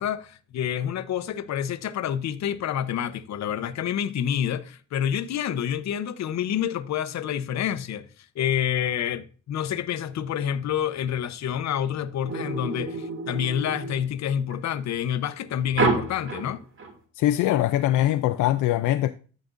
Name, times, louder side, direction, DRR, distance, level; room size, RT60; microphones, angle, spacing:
voice 1, 0.0-8.1 8.4-16.6, left 9 dB, 65° left, 0.8 m, -28 dB
sound 1, 12.2-14.5 15.7-16.9, right 3 dB, 45° right, 2.2 m, -29 dB
voice 2, 17.2-19.1, left 14 dB, 80° left, 0.5 m, -22 dB
13.5 x 5.1 x 2.5 m
cardioid pair, 90°, 30 cm